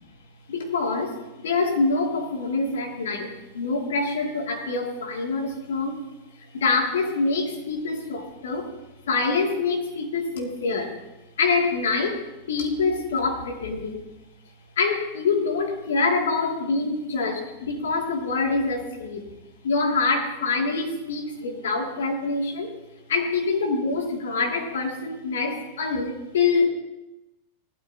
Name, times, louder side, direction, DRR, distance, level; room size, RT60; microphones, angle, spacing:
voice 1, 0.5-6.0 6.5-8.7 9.1-10.9 11.4-12.2 12.5-14.0 14.8-19.2 19.6-22.7 23.1-26.7, left 4 dB, 60° left, 1 dB, 2.6 m, -25 dB
17.5 x 12.5 x 2.9 m, 0.98 s
figure-of-eight pair, 90°, 0 cm